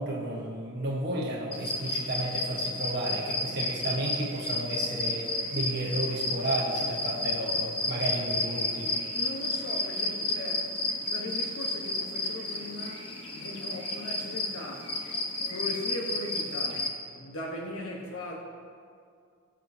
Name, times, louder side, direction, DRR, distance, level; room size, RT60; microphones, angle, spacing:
voice 1, 0.0-8.9, right 1 dB, 50° right, -3 dB, 1.2 m, -32 dB
sound 1, 1.5-16.9, left 2 dB, 25° left, 1.0 m, -32 dB
voice 2, 9.1-10.7 11.1-15.0 15.5-18.4, left 1 dB, 75° left, -1 dB, 1.0 m, -39 dB
20.5 x 7.4 x 2.7 m, 2.3 s
head